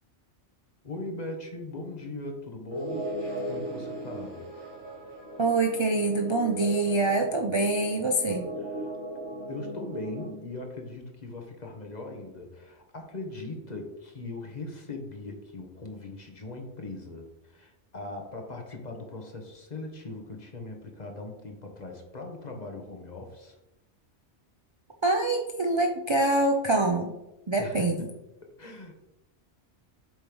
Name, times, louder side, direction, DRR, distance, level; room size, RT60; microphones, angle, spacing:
voice 1, 0.8-4.4 8.6-8.9 9.5-23.6 27.6-28.1 28.6-28.9, left 2 dB, 40° left, 3 dB, 1.1 m, -40 dB
sound 1, 2.7-10.2, right 1 dB, 55° right, 2.1 m, -37 dB
voice 2, 5.4-8.5 25.0-27.1 27.5-28.0, right 2 dB, 35° right, 3 dB, 0.4 m, -25 dB
7.8 x 3.1 x 5.2 m, 0.93 s
omnidirectional pair, 1.2 m